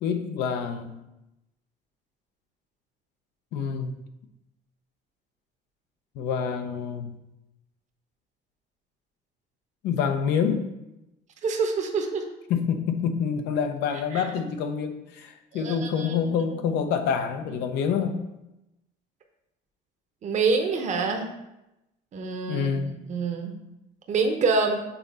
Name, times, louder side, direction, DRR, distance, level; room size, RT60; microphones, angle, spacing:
voice 1, 0.0-1.0 3.5-3.9 6.1-7.1 9.8-10.7 12.5-18.2 22.5-23.0, left 7 dB, 85° left, 7 dB, 0.7 m, -27 dB
voice 2, 11.4-12.2 14.1-14.2 15.5-16.4 20.2-21.3 22.1-23.5 24.1-24.8, right 4 dB, 45° right, 3 dB, 0.8 m, -26 dB
5.6 x 3.9 x 4.2 m, 0.92 s
cardioid pair, 110°, 17 cm